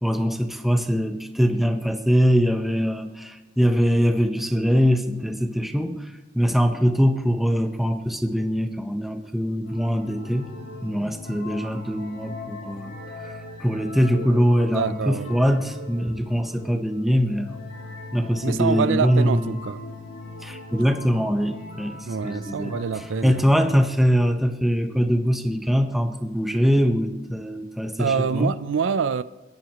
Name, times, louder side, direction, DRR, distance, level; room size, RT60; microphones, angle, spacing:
voice 1, 0.0-10.5 10.8-12.9 13.6-17.6 18.1-19.6 20.4-28.5, equal, ahead, 0.8 m, -22 dB
sound 1, 9.6-23.8, left 2 dB, 85° left, 3.9 m, -39 dB
voice 2, 14.7-15.3 18.4-19.8 22.1-23.4 28.0-29.2, right 6 dB, 80° right, 0.4 m, -25 dB
30.0 x 10.5 x 3.0 m
head